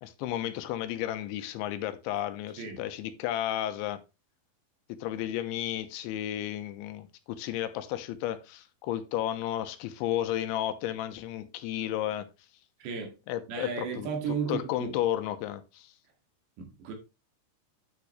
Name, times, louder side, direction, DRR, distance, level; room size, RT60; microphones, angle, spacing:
voice 1, 0.0-4.0 4.9-12.3 13.3-14.1 14.5-15.9, left 12 dB, 90° left, 3.3 m, -33 dB
voice 2, 12.8-13.1 13.5-14.9 16.6-16.9, right 6 dB, 70° right, 4.2 m, -34 dB
9.8 x 7.1 x 3.1 m
omnidirectional pair, 5.3 m